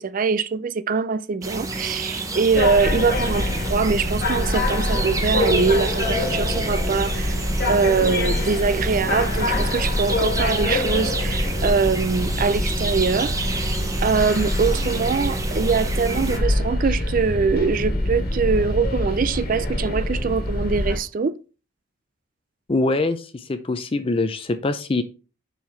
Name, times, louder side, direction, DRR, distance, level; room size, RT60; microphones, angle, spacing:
voice 1, 0.0-7.4 7.7-13.7 14.0-21.4, right 5 dB, 40° right, 0.3 m, -23 dB
sound 1, 1.4-16.4, right 2 dB, 15° right, 0.7 m, -30 dB
sound 2, 2.5-21.0, left 1 dB, 45° left, 1.6 m, -25 dB
voice 2, 22.7-25.0, left 2 dB, 25° left, 0.4 m, -23 dB
7.3 x 5.6 x 3.2 m
head